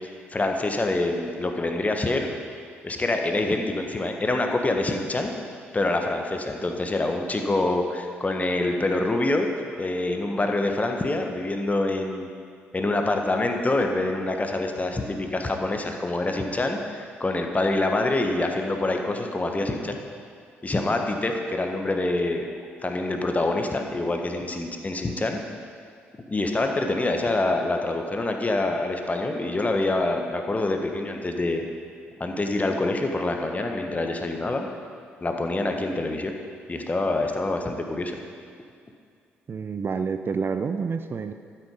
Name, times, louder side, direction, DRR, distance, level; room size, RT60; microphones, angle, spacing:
voice 1, 0.3-2.3 2.8-5.3 5.7-9.5 9.8-12.3 12.7-19.9 20.6-22.5 22.8-25.4 26.3-31.6 32.2-34.7 35.2-36.3 36.7-38.2, left 2 dB, 25° left, 3 dB, 1.5 m, -26 dB
voice 2, 39.5-41.3, right 5 dB, 40° right, 9 dB, 0.6 m, -28 dB
12.5 x 9.4 x 5.4 m, 2.2 s
figure-of-eight pair, 40°, 6 cm